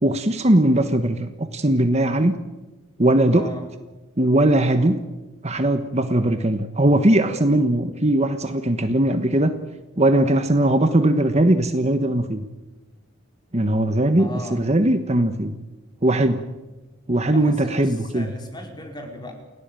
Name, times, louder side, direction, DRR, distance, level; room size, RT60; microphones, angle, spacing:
voice 1, 0.0-2.3 3.0-3.5 4.2-5.0 5.4-9.5 10.0-12.4 13.5-14.3 14.6-15.5 16.0-16.4 17.1-18.2, right 1 dB, 30° right, 8 dB, 1.3 m, -19 dB
voice 2, 3.3-3.7 14.2-14.7 17.2-19.3, left 1 dB, 20° left, 3 dB, 4.8 m, -37 dB
29.5 x 17.5 x 9.1 m, 1.1 s
head